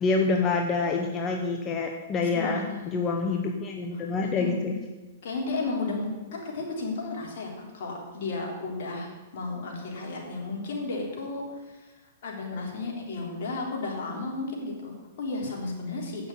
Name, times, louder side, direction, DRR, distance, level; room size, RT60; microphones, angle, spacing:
voice 1, 0.0-4.8, left 4 dB, 25° left, 2 dB, 1.1 m, -27 dB
voice 2, 2.3-2.9 4.0-4.6 5.2-11.9 12.2-16.3, left 3 dB, 65° left, -1 dB, 3.7 m, -33 dB
9.0 x 7.0 x 8.4 m, 1.2 s
hypercardioid pair, 130°, 0 cm